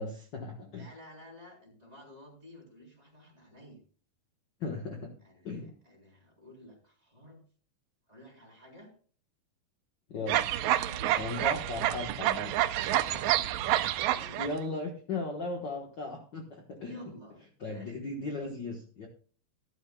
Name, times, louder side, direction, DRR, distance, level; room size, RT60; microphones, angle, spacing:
voice 1, 0.0-0.9 4.6-5.1 5.4-5.8 10.1-10.5 11.2-12.6 14.4-17.0 17.6-19.1, left 3 dB, 60° left, 1 dB, 1.1 m, -37 dB
voice 2, 0.7-3.8 5.2-7.4 8.1-8.9 10.6-11.5 12.9-13.4 14.1-14.5 16.8-18.0, equal, 10° right, -3 dB, 3.3 m, -52 dB
sound 1, 10.3-14.5, right 13 dB, 85° right, 1.6 m, -28 dB
13.0 x 12.5 x 2.3 m, 0.41 s
omnidirectional pair, 3.9 m